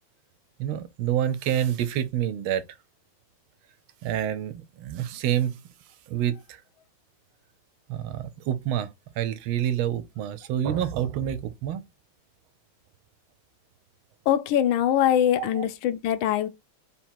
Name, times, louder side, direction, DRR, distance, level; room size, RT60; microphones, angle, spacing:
voice 1, 0.6-2.6 4.0-5.6 6.1-6.6 7.9-8.9 9.2-11.8 15.4-15.6, right 10 dB, 80° right, 1.4 m, -27 dB
voice 2, 14.3-16.5, left 10 dB, 80° left, 1.4 m, -23 dB
3.7 x 2.9 x 4.4 m
omnidirectional pair, 2.3 m